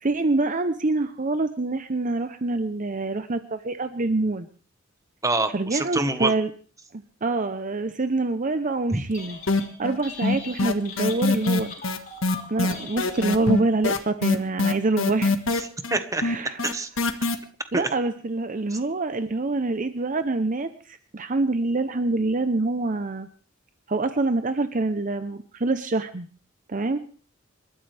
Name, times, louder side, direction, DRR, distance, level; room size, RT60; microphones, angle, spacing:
voice 1, 0.0-4.5 5.5-6.5 6.9-9.4 9.8-11.7 12.5-15.4 16.2-16.6 17.7-23.3 23.9-26.3 26.7-27.0, right 3 dB, 40° right, 10 dB, 0.8 m, -26 dB
voice 2, 5.2-6.3 8.9-9.0 15.5-16.3 16.6-16.9 17.7-17.9 18.7-18.8, right 2 dB, 15° right, 9 dB, 1.4 m, -26 dB
Telephone, 9.0-9.7 10.0-13.7, left 5 dB, 40° left, 5.9 m, -41 dB
sound 1, 9.5-10.0 10.2-17.3, left 3 dB, 85° left, 1.6 m, -23 dB
28.0 x 13.5 x 3.4 m, 0.40 s
head